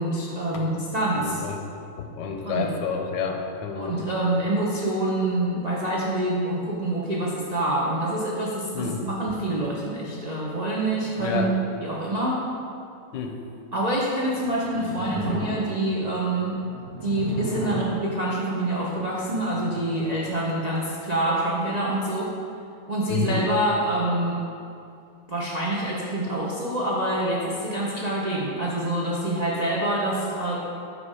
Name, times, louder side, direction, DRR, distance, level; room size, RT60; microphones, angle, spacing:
voice 1, 0.0-1.4 2.4-2.7 3.8-12.3 13.7-16.6 17.0-22.3 22.9-24.4 25.3-30.6, right 1 dB, 55° right, -6 dB, 0.4 m, -26 dB
voice 2, 1.2-1.6 2.0-4.0 8.7-9.0 11.2-11.5 13.1-13.4 23.1-23.5, left 6 dB, 80° left, 3 dB, 1.3 m, -29 dB
sound 1, 14.3-21.4, right 1 dB, 25° right, 1.1 m, -36 dB
5.7 x 5.2 x 4.9 m, 2.5 s
omnidirectional pair, 2.0 m